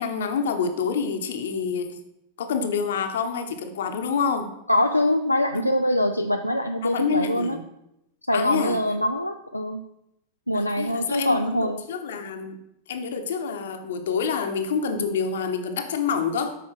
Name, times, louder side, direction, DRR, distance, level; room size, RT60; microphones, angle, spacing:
voice 1, 0.0-2.0 2.4-4.5 5.5-5.7 6.8-7.6 8.3-8.8 10.5-12.6 12.9-16.6, left 6 dB, 60° left, 7 dB, 1.0 m, -27 dB
voice 2, 4.7-7.6 8.3-9.9 10.5-11.8, left 1 dB, 90° left, 5 dB, 0.4 m, -23 dB
8.3 x 5.6 x 5.9 m, 0.84 s
figure-of-eight pair, 90°, 0 cm